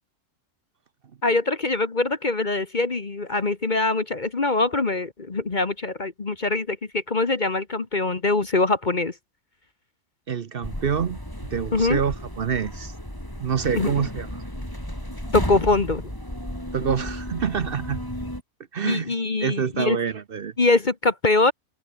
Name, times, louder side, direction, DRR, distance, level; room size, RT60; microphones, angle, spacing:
voice 1, 1.2-9.1 11.7-12.0 13.7-14.0 15.3-16.1 18.8-20.0 20.6-21.5, left 3 dB, 30° left, 1.4 m, -23 dB
voice 2, 10.3-11.2 11.5-12.9 13.4-14.4 16.7-18.0 18.7-19.1 19.4-20.5, right 7 dB, 50° right, 0.8 m, -26 dB
sound 1, 10.6-18.4, equal, 15° left, 7.4 m, -33 dB
omnidirectional pair, 1.6 m